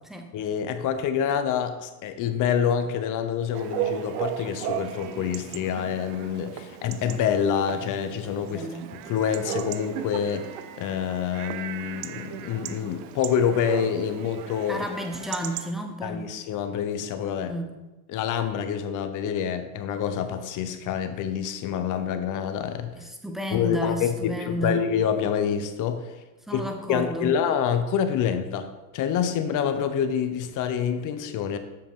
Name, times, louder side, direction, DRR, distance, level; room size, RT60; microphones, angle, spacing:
voice 1, 0.3-8.7 9.0-10.5 10.8-14.9 16.0-17.5 18.1-22.9 23.5-26.1 26.5-26.6 26.9-28.7 28.9-31.6, left 8 dB, 45° left, 9 dB, 0.8 m, -27 dB
Chatter / Bark / Livestock farm animals working animals, 3.5-15.7, right 12 dB, 80° right, 0.7 m, -36 dB
voice 2, 8.5-8.9 14.7-16.3 17.5-17.7 23.0-24.8 26.5-27.3, right 1 dB, ahead, 4 dB, 0.8 m, -32 dB
7.5 x 6.7 x 3.7 m, 1.1 s
supercardioid pair, 125°, 42 cm